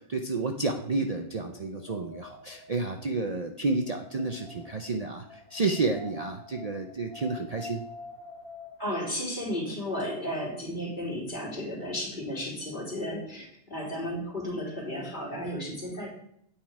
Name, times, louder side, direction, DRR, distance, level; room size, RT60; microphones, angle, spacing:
voice 1, 0.0-7.8, right 3 dB, 60° right, 4 dB, 0.4 m, -30 dB
Wind, 1.2-9.0, left 2 dB, 35° right, 3.0 m, -47 dB
voice 2, 8.8-16.1, equal, 30° left, -3 dB, 3.4 m, -33 dB
9.1 x 8.5 x 4.9 m, 0.70 s
omnidirectional pair, 1.7 m